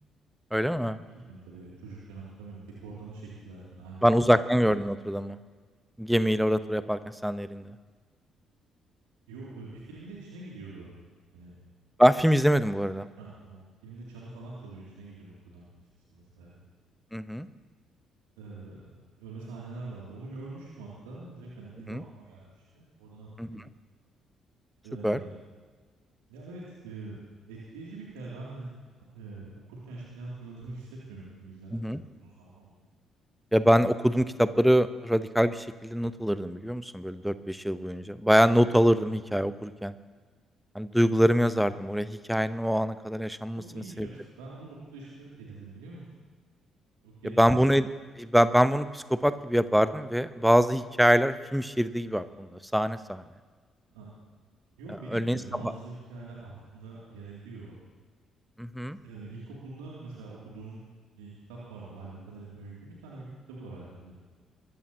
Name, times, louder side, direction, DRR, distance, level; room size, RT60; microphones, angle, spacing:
voice 1, 0.5-1.0 4.0-5.4 6.0-7.8 12.0-13.1 17.1-17.5 21.9-22.0 23.4-23.6 25.0-25.2 31.7-32.0 33.5-39.9 40.7-43.6 44.0-44.1 47.2-47.9 48.2-53.2 55.1-55.4 55.6-55.7 58.6-59.0, equal, ahead, 13 dB, 0.8 m, -24 dB
voice 2, 1.1-4.0 9.3-10.9 11.3-11.5 13.1-15.6 16.1-16.6 18.4-23.7 24.8-25.3 26.3-27.2 27.5-28.7 29.1-32.7 43.5-46.0 47.0-47.7 53.9-54.1 54.8-57.7 59.0-60.8 61.2-64.1, right 3 dB, 75° right, -5 dB, 2.5 m, -44 dB
22.5 x 14.5 x 2.8 m, 1.5 s
figure-of-eight pair, 45°, 0 cm